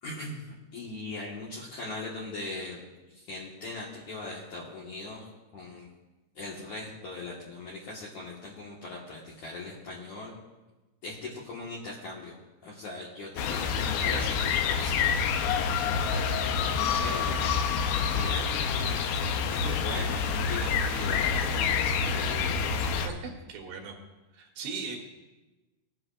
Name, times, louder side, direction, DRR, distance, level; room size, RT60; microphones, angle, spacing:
voice 1, 0.0-5.3 5.5-5.9 6.4-10.3 11.0-12.4 12.6-15.8 16.6-22.5, left 2 dB, 55° left, -6 dB, 2.4 m, -40 dB
sound 1, 13.4-23.1, left 6 dB, 85° left, 3.0 m, -27 dB
voice 2, 15.8-16.3 23.0-23.9 24.3-25.0, right 5 dB, 75° right, 2 dB, 3.6 m, -39 dB
21.5 x 10.0 x 2.5 m, 1.1 s
omnidirectional pair, 5.1 m